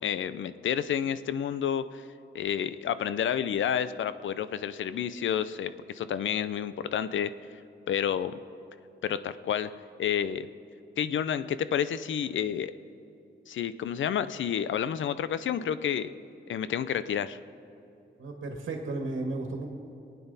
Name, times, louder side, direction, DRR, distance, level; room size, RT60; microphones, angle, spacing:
voice 1, 0.0-2.0 2.3-7.3 7.9-8.3 9.0-9.7 10.0-10.5 11.0-12.7 13.5-16.1 16.5-17.4, left 9 dB, 75° left, 14 dB, 0.5 m, -30 dB
voice 2, 18.2-19.7, right 2 dB, 85° right, 2 dB, 1.6 m, -34 dB
24.0 x 9.3 x 4.1 m, 2.8 s
wide cardioid pair, 140°, 20 cm